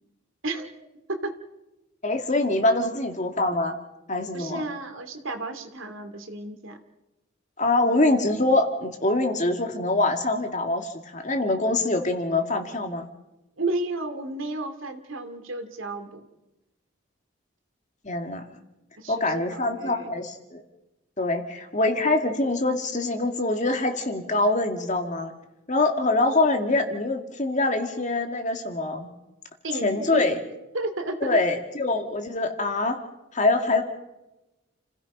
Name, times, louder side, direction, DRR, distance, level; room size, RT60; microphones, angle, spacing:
voice 1, 2.0-3.8 4.1-4.6 7.6-13.1 18.0-18.4 19.1-20.6 21.2-25.3 25.7-29.1 29.8-30.4 31.2-33.0 33.3-33.8, left 2 dB, 35° left, 5 dB, 2.2 m, -24 dB
voice 2, 4.3-6.8 13.6-16.2 19.0-20.1 29.6-30.2 30.7-31.4, right 2 dB, 70° right, 7 dB, 2.6 m, -32 dB
30.0 x 16.5 x 5.6 m, 0.98 s
head